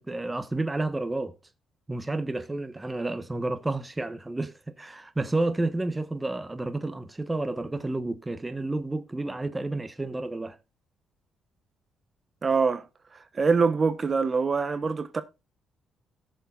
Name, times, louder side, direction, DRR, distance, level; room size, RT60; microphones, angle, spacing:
voice 1, 0.0-1.3 1.9-10.6, right 2 dB, 15° right, 1.1 m, -30 dB
voice 2, 12.4-12.9 13.3-15.2, right 4 dB, 35° right, 1.0 m, -24 dB
17.5 x 7.0 x 2.4 m
cardioid pair, 90°, 0 cm